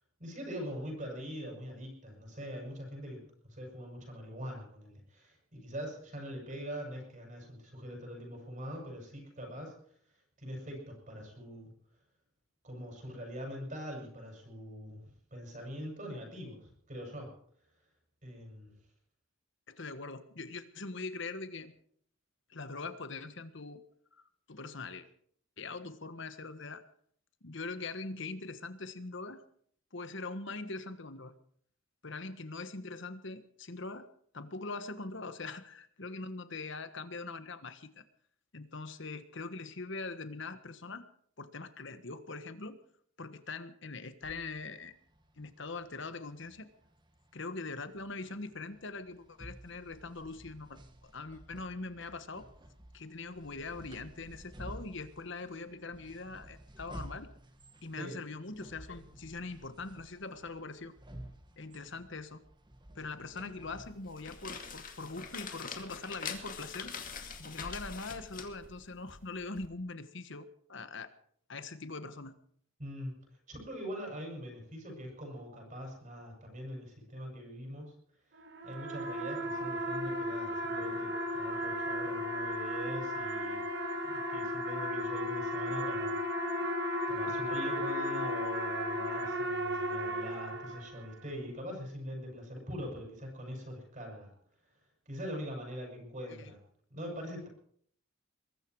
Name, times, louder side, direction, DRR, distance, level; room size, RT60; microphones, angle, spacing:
voice 1, 0.2-9.7 10.4-11.7 12.6-15.0 15.3-17.3 18.2-18.7 58.0-58.2 63.4-63.5 72.8-73.1 73.5-77.9 78.6-83.6 84.0-86.2 87.1-94.3 95.1-96.6 96.9-97.5, equal, 35° right, 0 dB, 7.0 m, -43 dB
voice 2, 19.7-21.7 22.5-23.8 24.1-25.0 25.6-26.8 27.4-29.4 29.9-31.3 32.0-34.1 34.3-38.0 38.5-41.1 41.4-42.8 43.2-45.0 45.4-46.7 47.3-52.5 52.9-57.3 57.8-60.9 61.6-62.4 62.9-66.9 67.4-71.1 71.5-72.4 96.3-96.5, left 3 dB, 60° left, 11 dB, 1.4 m, -42 dB
sound 1, 44.2-64.2, right 1 dB, 20° right, 1.6 m, -53 dB
sound 2, 64.0-69.7, left 5 dB, 40° left, 2.3 m, -44 dB
sound 3, 78.4-91.1, equal, 55° right, 1.9 m, -35 dB
22.5 x 13.5 x 4.8 m, 0.62 s
head